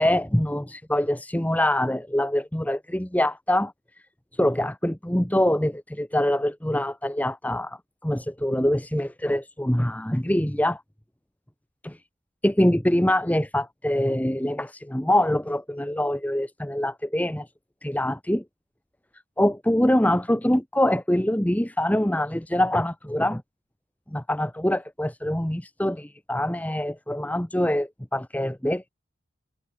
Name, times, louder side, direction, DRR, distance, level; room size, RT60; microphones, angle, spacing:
voice 1, 0.0-3.7 4.4-10.8 11.8-12.0 12.4-17.5 17.8-18.4 19.4-23.4 24.1-28.9, left 1 dB, 10° left, 1.1 m, -24 dB
head